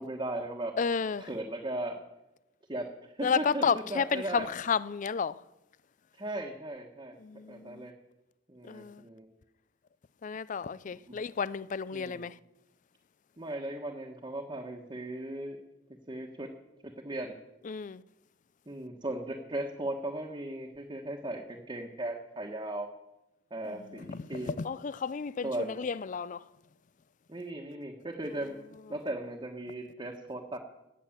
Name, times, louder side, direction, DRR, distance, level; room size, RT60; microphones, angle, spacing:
voice 1, 0.0-0.8 1.2-2.0 2.7-4.5 6.1-7.1 7.5-7.9 8.5-9.3 11.9-12.2 13.4-15.6 16.1-16.5 17.0-17.3 18.7-22.9 23.5-24.6 25.4-25.8 27.3-28.5 28.9-30.6, right 1 dB, 25° right, 1.3 m, -37 dB
voice 2, 0.8-1.3 3.2-5.4 7.2-7.9 8.6-9.0 10.2-12.4 17.6-18.0 23.7-26.4, left 6 dB, 40° left, 0.4 m, -32 dB
17.5 x 8.4 x 7.3 m
head